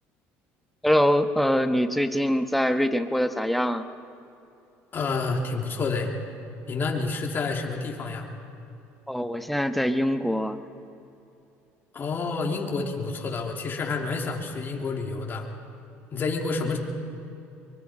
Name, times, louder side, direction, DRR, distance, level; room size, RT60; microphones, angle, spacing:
voice 1, 0.8-3.9 9.1-10.6, equal, ahead, 7 dB, 1.2 m, -23 dB
voice 2, 4.9-6.1 6.7-8.3 11.9-15.5 16.1-16.8, left 4 dB, 40° left, 0 dB, 3.1 m, -29 dB
24.0 x 23.0 x 5.0 m, 2.8 s
supercardioid pair, 100°, 6 cm